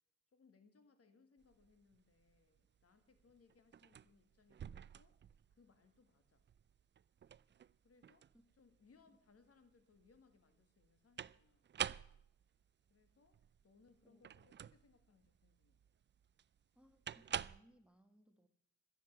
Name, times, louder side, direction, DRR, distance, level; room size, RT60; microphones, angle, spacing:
voice 1, 0.3-5.2 5.5-6.5 7.8-8.3 8.6-11.7 12.9-15.8, left 4 dB, 50° left, 9 dB, 1.9 m, -70 dB
sound 1, 1.4-17.6, right 9 dB, 35° right, 0.4 m, -49 dB
voice 2, 16.7-18.5, right 1 dB, 5° right, 8 dB, 1.3 m, -68 dB
12.5 x 10.0 x 7.2 m, 0.76 s
cardioid pair, 70°, 31 cm